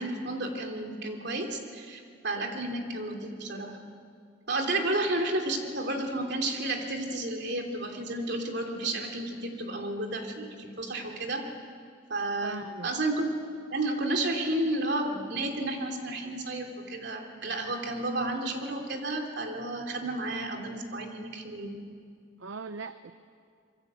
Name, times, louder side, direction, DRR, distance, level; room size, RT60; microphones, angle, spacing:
voice 1, 0.0-3.8 4.5-11.4 12.1-13.3 13.5-21.8, right 2 dB, 55° right, 3 dB, 3.1 m, -32 dB
voice 2, 12.4-12.9 22.4-23.1, right 4 dB, 70° right, 10 dB, 0.7 m, -39 dB
25.5 x 23.0 x 8.2 m, 2.3 s
head